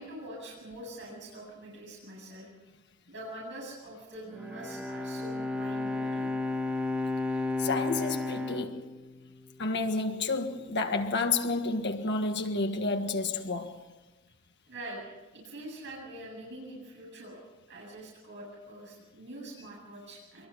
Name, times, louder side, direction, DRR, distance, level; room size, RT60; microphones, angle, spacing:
voice 1, 0.0-2.5 3.1-6.3 6.6-6.7 14.7-15.0 15.3-17.4 17.7-20.5, right 1 dB, 55° right, 8.0 m, -44 dB
Bowed string instrument, 4.3-9.7, left 2 dB, 5° right, 1.8 m, -33 dB
voice 2, 7.6-8.9 9.6-13.8, left 3 dB, 55° left, 1.7 m, -30 dB
23.5 x 22.5 x 5.8 m
head